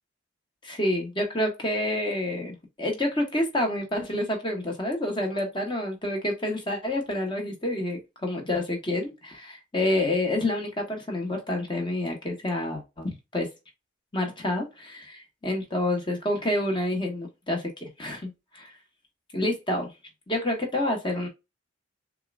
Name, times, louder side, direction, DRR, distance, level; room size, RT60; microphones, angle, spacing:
voice 1, 0.6-13.5 14.1-18.7 19.3-19.9 20.3-21.3, left 1 dB, 25° left, 1.3 m, -28 dB
6.6 x 2.6 x 2.3 m
head